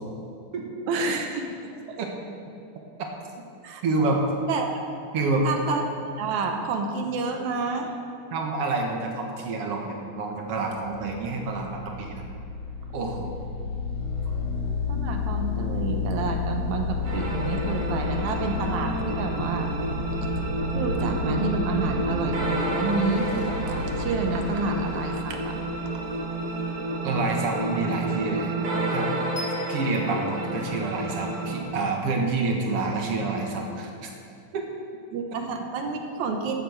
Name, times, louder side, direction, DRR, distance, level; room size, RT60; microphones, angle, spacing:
voice 1, 0.9-1.5 1.9-2.0 3.6-3.8 4.5-4.8 5.4-5.9 6.2-7.9 14.9-19.7 20.7-25.6 25.9-26.0 35.1-36.6, right 4 dB, 70° right, 4 dB, 2.2 m, -29 dB
voice 2, 3.8-4.2 5.1-5.5 8.3-12.2 12.9-13.3 27.0-29.1 29.7-34.1 34.5-34.6, right 3 dB, 55° right, 1 dB, 2.1 m, -28 dB
sound 1, 10.8-28.1, left 4 dB, 55° left, 2.8 m, -31 dB
sound 2, 17.0-31.6, right 2 dB, 90° right, 4.1 m, -30 dB
sound 3, 29.4-31.4, left 1 dB, 20° left, 1.4 m, -42 dB
14.0 x 7.9 x 6.4 m, 2.7 s
omnidirectional pair, 3.6 m